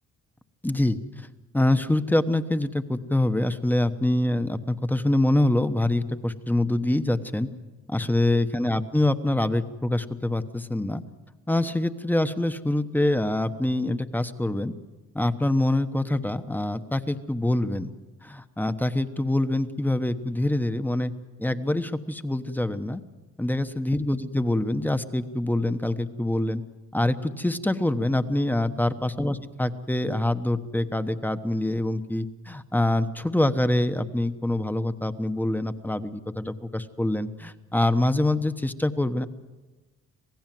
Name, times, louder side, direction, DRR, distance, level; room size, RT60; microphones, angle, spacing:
voice 1, 0.6-1.0 1.5-7.5 7.9-11.0 11.5-14.7 15.1-17.9 18.2-21.1 21.4-23.0 23.4-26.6 26.9-39.2, left 1 dB, 5° left, 10 dB, 1.2 m, -25 dB
27.0 x 17.5 x 7.7 m, 1.2 s
cardioid pair, 90°, 30 cm